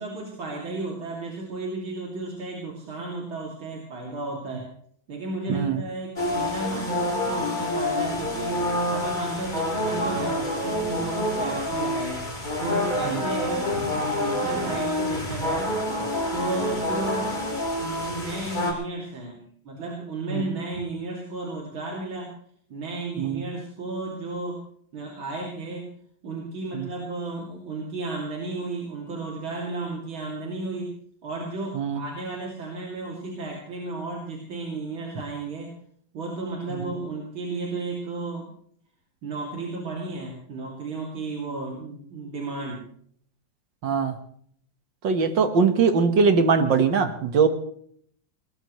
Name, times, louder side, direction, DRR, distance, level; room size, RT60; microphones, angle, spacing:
voice 1, 0.0-4.7 5.1-12.3 12.6-15.8 16.3-17.3 17.8-22.3 22.7-24.6 24.9-25.9 26.2-30.9 31.2-35.7 36.1-38.5 39.2-42.8, right 3 dB, 85° right, -2 dB, 3.5 m, -33 dB
voice 2, 5.5-5.8 13.1-13.2 20.3-20.4 23.2-23.4 26.7-26.9 31.7-32.0 36.7-36.9 43.8-44.1 45.0-47.5, right 5 dB, 70° right, 8 dB, 2.1 m, -21 dB
sound 1, 6.2-18.7, left 1 dB, 20° left, 4.1 m, -27 dB
21.5 x 19.5 x 3.1 m, 0.62 s
omnidirectional pair, 2.1 m